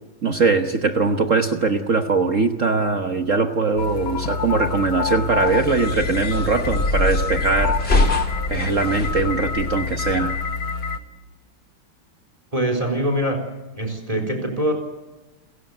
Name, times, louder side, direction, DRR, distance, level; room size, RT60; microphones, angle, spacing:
voice 1, 0.2-10.3, right 4 dB, 45° right, 6 dB, 1.3 m, -21 dB
sound 1, 3.8-11.0, left 5 dB, 70° left, 2.3 m, -27 dB
sound 2, 5.4-10.4, left 2 dB, 25° left, 2.8 m, -25 dB
voice 2, 12.5-13.4 13.7-14.7, right 1 dB, 15° right, 6 dB, 4.1 m, -23 dB
29.5 x 15.5 x 7.9 m, 1.1 s
omnidirectional pair, 2.4 m